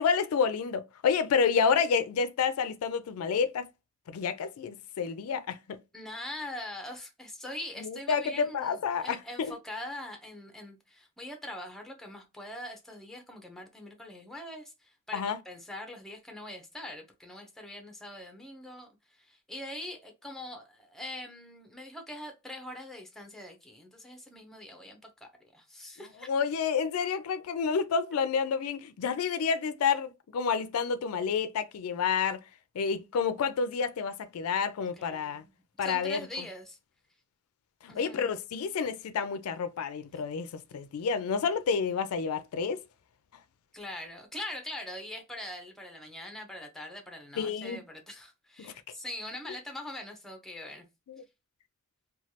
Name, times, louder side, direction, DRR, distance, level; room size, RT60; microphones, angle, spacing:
voice 1, 0.0-3.7 4.1-5.8 7.8-9.5 15.1-15.4 26.3-32.4 32.8-35.4 35.8-36.2 37.8-42.8 47.4-47.8 48.6-48.7 51.1-51.2, left 6 dB, 85° left, 0.4 m, -29 dB
voice 2, 5.9-26.3 34.9-35.5 35.8-36.8 37.9-38.3 43.7-50.9, left 1 dB, ahead, 0.6 m, -43 dB
3.1 x 2.3 x 2.8 m
head